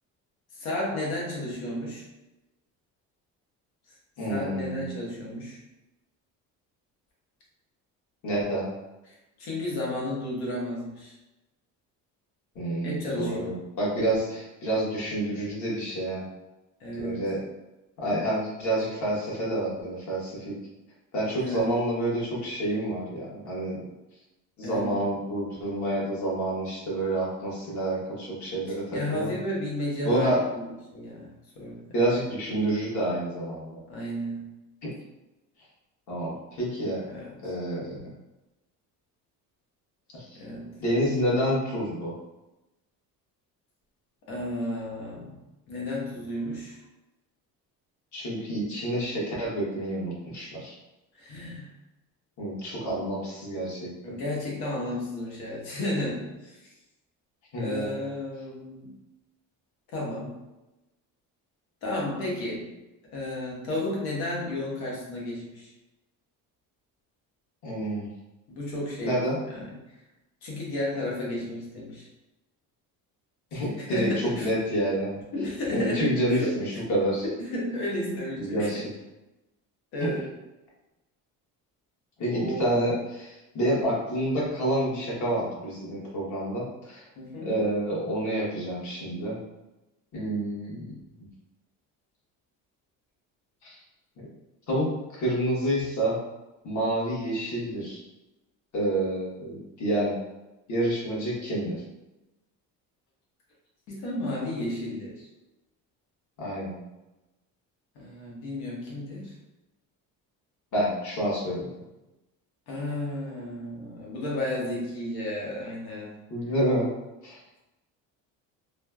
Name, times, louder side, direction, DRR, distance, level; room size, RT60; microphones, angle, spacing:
voice 1, 0.5-2.1 3.9-4.0 4.3-5.6 9.4-11.1 12.8-13.6 16.8-17.3 21.4-21.7 24.6-25.0 28.9-31.9 33.9-34.6 37.1-37.4 40.3-40.8 44.3-45.4 45.7-46.8 51.1-51.7 54.0-56.7 57.5-58.9 59.9-60.4 61.8-62.7 63.1-65.7 68.5-69.7 70.4-72.1 73.5-74.5 75.3-76.6 77.5-78.7 79.9-80.2 82.3-82.8 87.2-87.6 103.9-105.3 107.9-109.3 112.7-116.1, left 1 dB, 75° left, -4 dB, 1.1 m, -33 dB
voice 2, 4.2-4.9 8.2-8.7 12.5-16.3 16.9-17.4 18.0-20.6 21.1-23.8 24.6-28.8 29.1-29.3 30.0-30.4 31.9-33.8 36.1-37.0 37.4-38.1 40.1-40.4 40.8-42.1 48.1-50.7 52.4-54.2 57.5-58.0 67.6-68.1 69.0-69.4 73.5-75.2 75.7-77.3 78.4-78.8 80.0-80.1 82.2-87.0 87.4-89.4 90.1-91.0 93.6-93.8 94.7-96.2 96.6-98.0 98.7-100.2 100.7-101.8 106.4-106.8 110.7-111.7 116.3-116.9 117.2-117.4, right 1 dB, 50° left, -6 dB, 1.2 m, -28 dB
3.1 x 2.1 x 2.3 m, 1.0 s
cardioid pair, 100°, 37 cm